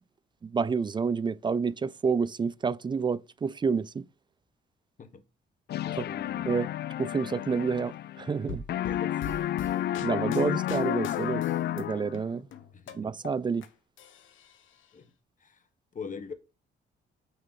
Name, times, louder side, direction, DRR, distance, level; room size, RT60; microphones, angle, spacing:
voice 1, 0.4-4.0 6.0-6.1 6.5-6.7 7.0-8.6 10.0-11.4 11.8-12.5 12.9-13.7, right 5 dB, 25° right, 0.3 m, -29 dB
sound 1, 5.7-8.4 8.7-12.3, left 12 dB, 55° left, 0.4 m, -31 dB
voice 2, 5.7-6.6 8.8-9.6 12.7-13.1 14.9-15.1 15.4-15.7 15.9-16.3, left 5 dB, 40° left, 1.2 m, -43 dB
sound 2, 8.5-11.8 12.1-13.7 14.0-14.9, left 6 dB, 75° left, 1.1 m, -42 dB
9.2 x 3.1 x 4.1 m
cardioid pair, 90°, 20 cm